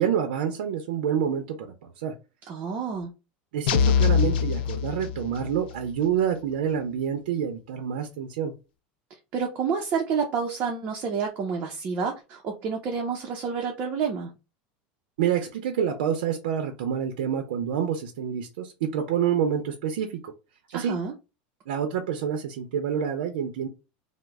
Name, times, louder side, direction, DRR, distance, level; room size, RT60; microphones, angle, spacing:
voice 1, 0.0-2.1 3.5-8.5 15.2-20.3 20.7-21.0 21.7-23.7, right 8 dB, 90° right, 0.6 m, -27 dB
voice 2, 2.4-3.1 9.3-14.3 20.7-21.1, right 6 dB, 35° right, 0.6 m, -29 dB
sound 1, 3.7-5.6, left 7 dB, 85° left, 0.4 m, -23 dB
3.0 x 2.1 x 3.4 m
supercardioid pair, 155°, 5 cm